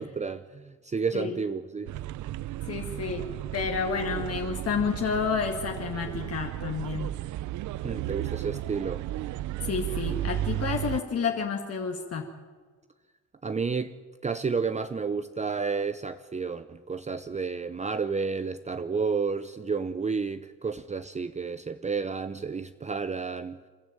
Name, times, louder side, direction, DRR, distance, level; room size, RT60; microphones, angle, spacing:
voice 1, 0.0-1.9 7.8-9.1 13.4-13.9 14.2-23.6, right 5 dB, 25° right, 0.7 m, -31 dB
sound 1, 1.9-11.0, right 14 dB, 75° right, 0.6 m, -34 dB
voice 2, 2.7-3.2 3.5-7.1 9.6-12.3, left 5 dB, 55° left, 2.1 m, -30 dB
28.0 x 12.0 x 9.0 m
cardioid pair, 90°, 30 cm